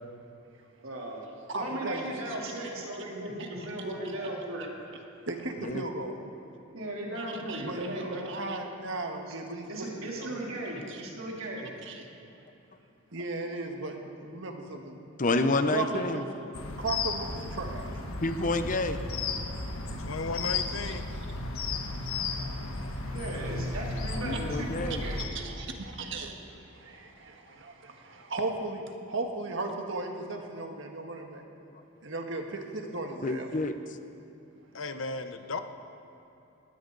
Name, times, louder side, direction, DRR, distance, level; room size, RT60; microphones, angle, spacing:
voice 1, 0.8-1.2 1.5-4.7 6.7-8.3 9.3-9.4 9.7-11.7 23.1-25.3, right 1 dB, 90° right, -3 dB, 3.3 m, -37 dB
voice 2, 1.5-2.5 3.4-3.7 4.2-4.3 5.3-6.2 7.2-10.4 10.9-11.2 11.8-12.1 13.1-15.0 15.7-16.5 16.8-17.9 19.7-19.8 21.8-23.5 24.9-31.4 32.0-33.5, right 2 dB, 60° right, 3 dB, 1.6 m, -37 dB
voice 3, 15.2-16.2 18.2-19.0 24.2-25.0 33.2-33.8, left 2 dB, 40° left, 8 dB, 0.8 m, -28 dB
sound 1, 16.5-25.3, left 3 dB, 85° left, 1.3 m, -34 dB
voice 4, 20.1-21.1 34.7-35.6, left 3 dB, 65° left, 8 dB, 0.9 m, -35 dB
19.5 x 16.5 x 4.0 m, 2.9 s
head